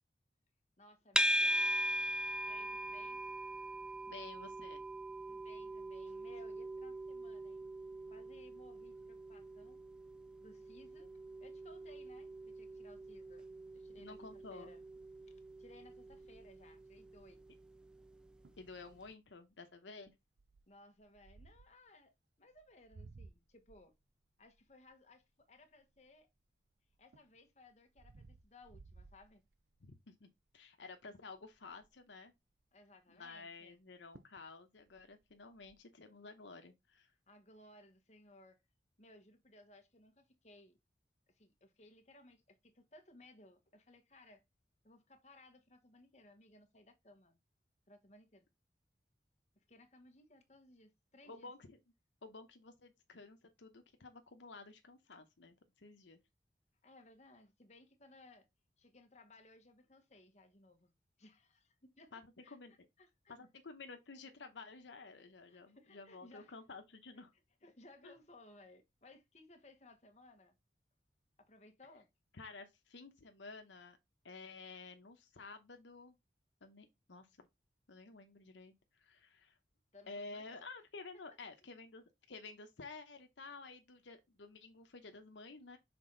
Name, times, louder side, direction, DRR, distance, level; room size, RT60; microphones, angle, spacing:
voice 1, 0.8-1.7 2.4-3.2 5.2-7.7 8.1-9.8 10.4-11.1 11.4-13.5 13.7-14.8 15.3-17.5 20.7-23.9 24.4-26.3 27.0-29.4 32.7-33.8 37.3-38.6 39.0-40.8 41.3-44.4 44.8-47.4 47.9-48.5 49.5-51.5 56.8-58.5 58.8-60.9 61.2-63.4 65.5-66.5 67.6-70.5 71.4-72.1 79.9-80.6 81.1-81.2, left 2 dB, 40° left, 1.2 m, -62 dB
sound 1, 1.2-18.4, right 1 dB, 5° right, 0.3 m, -41 dB
voice 2, 4.1-4.8 14.0-14.7 18.6-20.1 29.8-32.3 33.1-37.1 51.3-51.8 52.2-56.2 62.1-62.2 62.5-62.7 63.3-67.3 68.0-68.1 72.3-74.0 74.2-76.1 76.6-77.5 77.9-79.6 80.1-85.8, left 3 dB, 90° left, 0.9 m, -52 dB
sound 2, 16.1-17.6 18.1-18.2 18.4-18.7 19.2-19.5 20.4-21.8 22.5-26.4 26.9-29.9 30.4-30.7 30.9-31.0 31.3-32.0 33.7-33.8 34.1-34.5 34.8-35.8, right 3 dB, 70° right, 0.6 m, -60 dB
6.0 x 4.3 x 3.8 m
head